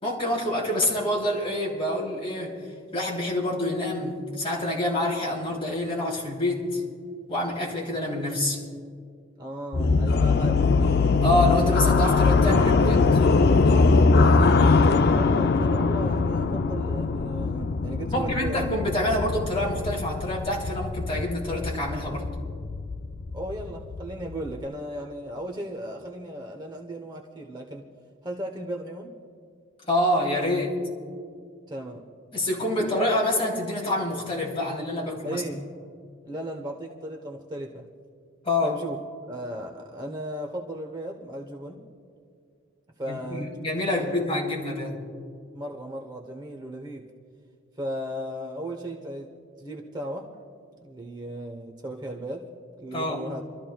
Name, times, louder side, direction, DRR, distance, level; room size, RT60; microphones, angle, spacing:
voice 1, 0.0-2.5 2.9-6.8 7.3-8.6 11.2-13.2 18.1-22.3 29.9-30.8 32.3-35.4 38.4-38.8 43.1-45.0 52.9-53.2, left 1 dB, 30° left, -3 dB, 3.1 m, -27 dB
voice 2, 9.4-10.7 15.1-18.6 23.3-27.8 28.2-29.1 31.7-32.0 32.8-32.9 35.2-35.6 36.2-37.9 38.6-39.0 39.3-41.8 43.0-44.2 45.5-47.1 47.8-49.3 49.6-50.3 50.8-52.4 52.8-53.4, right 1 dB, 20° right, 1 dB, 0.9 m, -36 dB
sound 1, 9.7-24.6, left 4 dB, 50° left, 0.4 m, -22 dB
28.5 x 13.5 x 2.3 m, 2.3 s
head